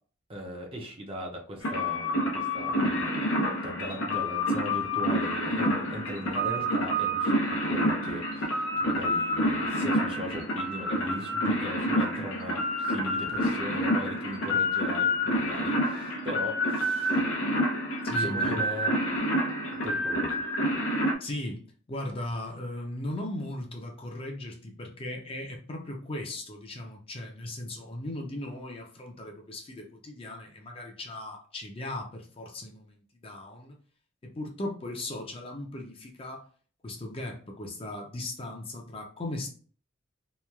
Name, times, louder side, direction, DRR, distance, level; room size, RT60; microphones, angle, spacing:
voice 1, 0.3-3.4 3.6-17.2 18.2-19.1 19.8-20.4, equal, 30° right, 1 dB, 0.5 m, -39 dB
sound 1, 1.6-21.1, equal, 90° left, 0.6 m, -28 dB
voice 2, 18.0-18.6 21.2-33.8 34.2-36.4 36.8-39.5, left 1 dB, 30° left, 1 dB, 0.5 m, -37 dB
2.9 x 2.3 x 2.2 m, 0.42 s
head